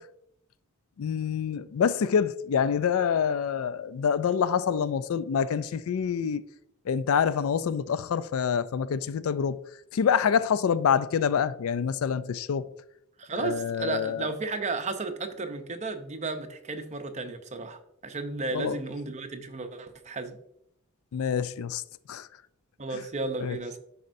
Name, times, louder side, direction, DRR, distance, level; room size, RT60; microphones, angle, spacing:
voice 1, 1.0-6.4 6.9-9.6 9.9-12.7 13.4-14.3 18.5-18.8 21.1-21.8 22.1-22.3 22.9-23.0 23.4-23.6, left 7 dB, 70° left, 0.4 m, -26 dB
voice 2, 13.2-20.4 22.8-23.8, right 3 dB, 30° right, 0.7 m, -34 dB
10.5 x 4.2 x 2.6 m
head